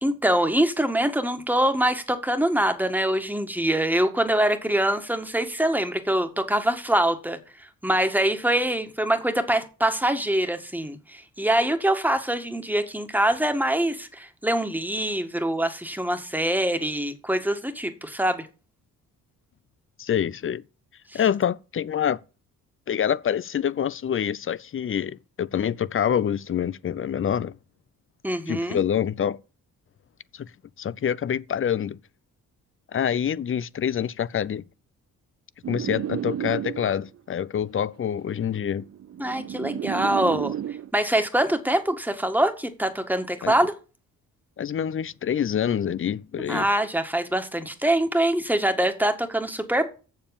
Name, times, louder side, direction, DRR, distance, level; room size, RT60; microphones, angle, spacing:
voice 1, 0.0-18.5 21.1-21.2 28.2-28.8 39.2-40.5 40.9-43.7 46.5-49.9, right 1 dB, 5° right, 1.7 m, -24 dB
voice 2, 20.0-20.6 21.1-22.2 22.9-27.6 28.5-29.4 30.3-30.5 30.8-32.0 32.9-34.6 35.7-38.8 43.4-43.5 44.6-46.7, left 9 dB, 35° left, 0.5 m, -26 dB
sound 1, 35.6-37.2 38.2-40.9, right 10 dB, 45° right, 0.6 m, -32 dB
7.4 x 7.1 x 7.0 m
cardioid pair, 75°, 35 cm